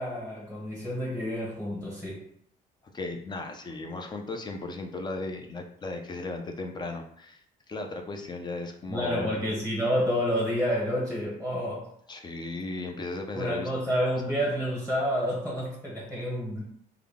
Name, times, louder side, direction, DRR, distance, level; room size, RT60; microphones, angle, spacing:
voice 1, 0.0-2.2 8.9-11.9 13.3-16.6, equal, 10° left, -4 dB, 1.1 m, -29 dB
voice 2, 2.9-9.4 12.1-13.7, left 2 dB, 25° left, 4 dB, 0.5 m, -36 dB
3.5 x 2.2 x 3.5 m, 0.66 s
cardioid pair, 110°, 17 cm